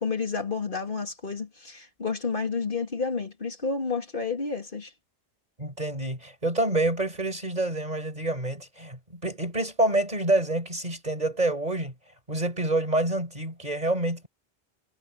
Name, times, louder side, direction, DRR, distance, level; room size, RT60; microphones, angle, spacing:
voice 1, 0.0-4.9, left 4 dB, 55° left, 2.6 m, -30 dB
voice 2, 5.6-11.9 12.3-14.3, right 2 dB, 40° right, 5.0 m, -27 dB
omnidirectional pair, 1.0 m